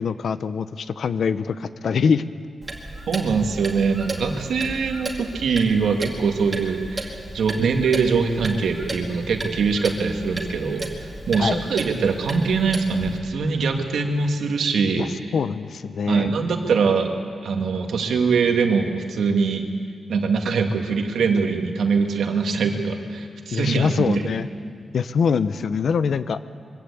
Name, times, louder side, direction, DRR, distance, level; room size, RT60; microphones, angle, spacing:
voice 1, 0.0-2.2 11.4-11.6 15.0-15.1 15.3-16.3 23.5-24.5 24.9-26.4, left 6 dB, 65° left, 14 dB, 0.7 m, -23 dB
Clock, 2.6-13.2, right 2 dB, 20° right, 2.3 m, -34 dB
voice 2, 3.1-10.9 11.3-15.3 16.1-17.1 17.4-19.6 20.1-24.2, right 5 dB, 85° right, 4 dB, 1.9 m, -22 dB
22.5 x 15.0 x 8.4 m, 2.2 s
wide cardioid pair, 145°, 0 cm